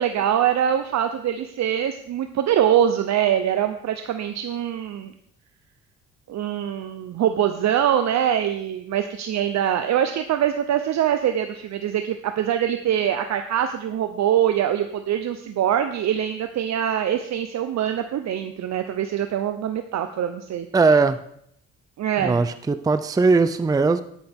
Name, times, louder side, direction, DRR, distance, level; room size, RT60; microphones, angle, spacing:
voice 1, 0.0-5.1 6.3-20.7 22.0-22.4, right 10 dB, 65° right, 7 dB, 0.8 m, -23 dB
voice 2, 20.7-21.2 22.2-24.0, right 4 dB, 10° right, 11 dB, 0.5 m, -19 dB
10.0 x 10.0 x 3.6 m, 0.70 s
cardioid pair, 90°, 30 cm